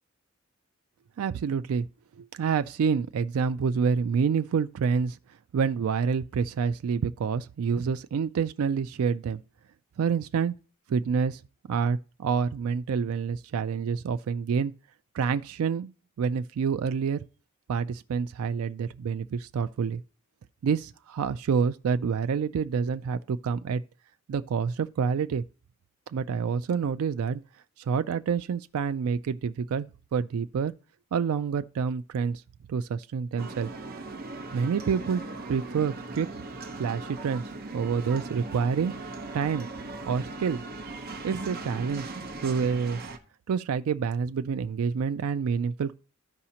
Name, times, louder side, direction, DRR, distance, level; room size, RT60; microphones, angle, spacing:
voice 1, 1.2-1.9 2.2-5.2 5.5-9.4 10.0-10.5 10.9-11.4 11.7-14.7 15.1-15.9 16.2-17.2 17.7-20.0 20.6-23.8 24.3-25.5 26.1-27.4 27.8-29.9 30.1-30.7 31.1-32.4 32.7-33.7 34.5-35.2 35.5-36.3 36.8-37.4 37.7-39.7 40.1-40.6 41.2-42.1 42.4-43.0 43.5-45.9, right 6 dB, 80° right, 0.3 m, -27 dB
sound 1, 33.4-43.2, right 3 dB, 45° right, 0.9 m, -39 dB
13.0 x 4.9 x 2.8 m
head